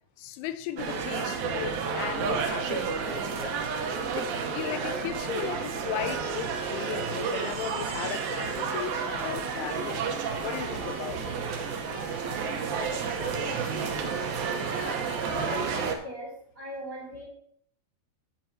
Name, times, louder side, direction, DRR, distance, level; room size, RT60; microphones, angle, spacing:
voice 1, 0.2-3.6 3.8-11.4, left 11 dB, 85° left, 3.0 m, -37 dB
sound 1, 0.8-16.0, right 5 dB, 75° right, 2.2 m, -31 dB
sound 2, 8.7-16.0, left 3 dB, 55° left, 3.2 m, -51 dB
voice 2, 14.6-17.2, equal, 35° right, 1.8 m, -39 dB
14.5 x 8.6 x 2.8 m
omnidirectional pair, 5.6 m